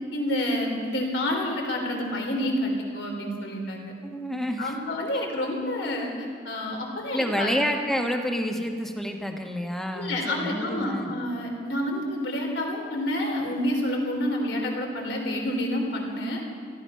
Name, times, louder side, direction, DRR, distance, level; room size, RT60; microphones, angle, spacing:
voice 1, 0.1-3.9 4.6-7.5 9.9-16.4, left 1 dB, 85° left, 1 dB, 3.3 m, -28 dB
voice 2, 4.0-4.7 7.1-11.1, equal, ahead, 3 dB, 1.2 m, -28 dB
18.0 x 13.5 x 5.6 m, 2.2 s
head